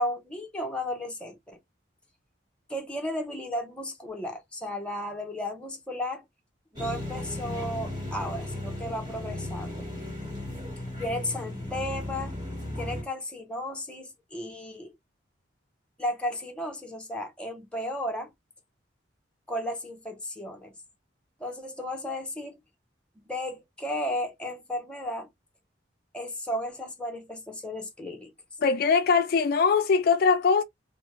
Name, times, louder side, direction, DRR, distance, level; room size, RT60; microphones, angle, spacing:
voice 1, 0.0-1.6 2.7-6.2 6.7-9.9 11.0-12.3 12.8-14.9 16.0-18.3 19.5-20.7 21.4-22.6 23.3-25.3 26.1-28.3, left 1 dB, 5° left, 0.7 m, -34 dB
sound 1, 6.8-13.0, left 1 dB, 25° right, 1.5 m, -35 dB
voice 2, 28.6-30.6, left 5 dB, 55° left, 0.3 m, -21 dB
3.3 x 2.1 x 2.9 m
head